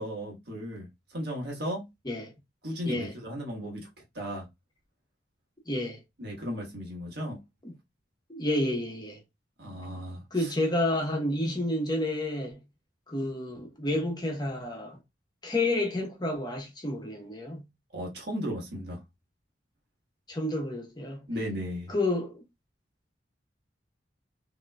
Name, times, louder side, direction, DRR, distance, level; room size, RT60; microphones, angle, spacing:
voice 1, 0.0-1.8 2.6-3.9 4.1-4.5 6.2-7.4 9.6-10.5 17.9-19.0 21.3-21.9, equal, 60° right, 1.4 m, -35 dB
voice 2, 5.7-6.0 7.6-7.7 8.3-9.2 10.3-12.6 13.1-15.0 15.4-17.7 20.3-21.3 21.9-22.4, left 1 dB, 25° left, 1.1 m, -30 dB
3.8 x 2.9 x 2.3 m
head